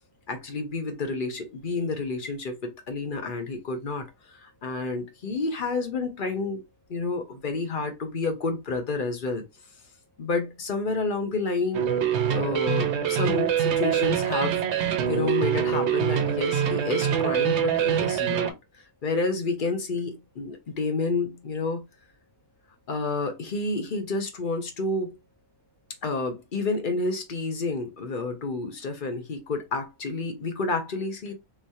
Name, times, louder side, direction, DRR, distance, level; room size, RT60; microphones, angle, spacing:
voice 1, 0.3-4.0 4.4-6.6 6.9-9.4 10.2-11.8 12.3-18.5 19.0-21.8 22.9-25.2 26.0-31.3, left 3 dB, 40° left, 1.0 m, -29 dB
sound 1, 11.7-18.5, right 9 dB, 60° right, 0.8 m, -24 dB
3.7 x 3.1 x 2.7 m
omnidirectional pair, 1.5 m